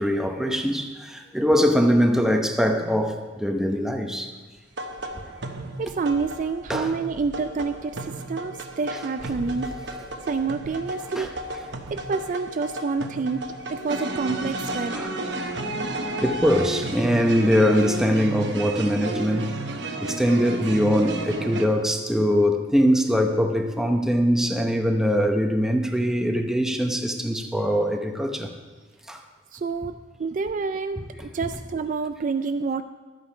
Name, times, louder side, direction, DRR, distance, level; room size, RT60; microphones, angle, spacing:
voice 1, 0.0-4.3 5.2-5.3 6.7-7.0 9.9-10.0 11.2-11.3 14.9-15.4 16.2-19.6 20.0-28.5 29.1-29.2 31.1-31.5, equal, 5° right, 4 dB, 0.8 m, -22 dB
sound 1, 4.8-21.7, right 2 dB, 70° right, 0.9 m, -33 dB
voice 2, 5.8-9.8 10.3-11.3 11.9-15.0 29.5-32.8, right 4 dB, 45° right, 9 dB, 0.3 m, -28 dB
12.5 x 8.6 x 5.1 m, 1.3 s
head